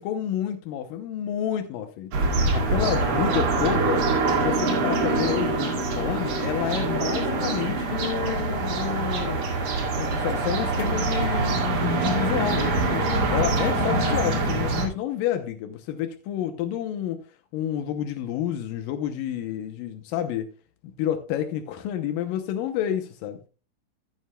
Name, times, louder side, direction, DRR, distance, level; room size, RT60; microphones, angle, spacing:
voice 1, 0.0-4.0 4.3-9.4 10.0-17.2 17.5-20.5 20.8-23.4, left 10 dB, 85° left, 2.5 m, -29 dB
sound 1, 2.1-14.9, right 3 dB, 65° right, 3.5 m, -24 dB
15.5 x 9.3 x 2.2 m
omnidirectional pair, 3.8 m